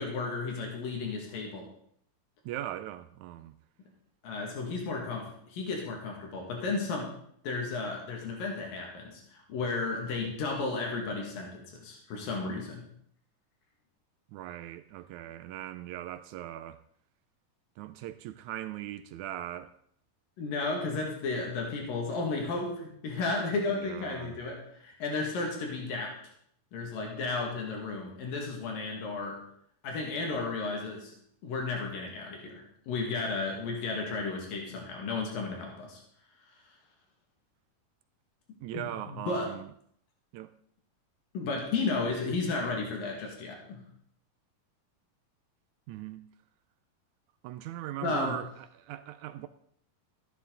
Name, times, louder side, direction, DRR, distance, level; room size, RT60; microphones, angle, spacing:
voice 1, 0.0-1.6 4.2-7.1 7.4-12.9 20.4-26.1 26.7-29.4 29.8-31.1 31.4-36.0 38.7-39.5 41.3-43.8 48.0-48.4, left 3 dB, 90° left, 3.9 m, -33 dB
voice 2, 2.4-3.5 14.3-16.8 17.8-19.7 23.8-24.4 38.6-39.7 40.3-40.5 45.9-46.2 47.4-49.5, right 13 dB, 80° right, 1.8 m, -39 dB
13.5 x 11.5 x 4.0 m
omnidirectional pair, 3.9 m